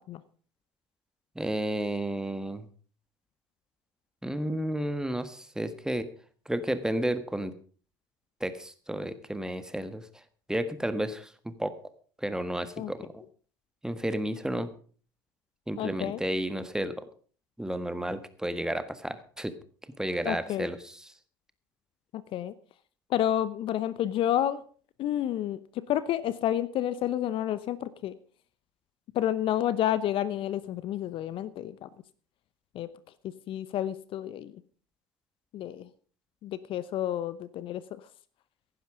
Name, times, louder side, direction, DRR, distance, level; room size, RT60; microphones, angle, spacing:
voice 1, 1.3-2.7 4.2-6.1 6.4-7.5 8.4-10.0 10.5-11.7 12.2-13.2 13.8-14.7 15.7-17.0 17.6-19.5 20.0-21.1, right 1 dB, 5° right, 11 dB, 1.6 m, -32 dB
voice 2, 15.8-16.2 20.2-20.7 22.1-22.5 23.1-24.6 25.0-25.6 25.9-28.1 29.1-31.9 32.7-32.9 33.5-34.5 35.5-35.9 36.4-38.0, left 11 dB, 50° left, 16 dB, 0.8 m, -30 dB
15.5 x 11.0 x 5.0 m, 0.43 s
hypercardioid pair, 70°, 11 cm